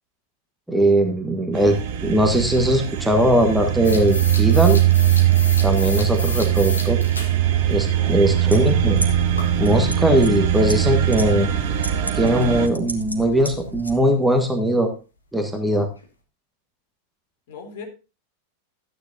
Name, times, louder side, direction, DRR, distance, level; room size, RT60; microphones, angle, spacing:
voice 1, 0.7-4.8 5.6-7.0 7.7-9.1 9.6-11.5 12.1-14.9 15.3-15.9, right 1 dB, 5° right, 4 dB, 1.5 m, -20 dB
sound 1, 1.5-12.7, right 12 dB, 50° right, 1.1 m, -21 dB
sound 2, 3.8-7.3 7.7-7.8 9.4-9.5 10.7-10.8 13.9-14.0 14.2-14.3 14.8-14.9 15.4-15.5 16.0-16.1, left 3 dB, 80° left, 1.9 m, -32 dB
voice 2, 7.5-8.4 17.5-17.9, left 5 dB, 55° left, 2 dB, 3.5 m, -39 dB
sound 3, 8.4-14.0, equal, 85° right, 1.4 m, -32 dB
13.5 x 9.7 x 2.7 m, 0.31 s
figure-of-eight pair, 90°, 0 cm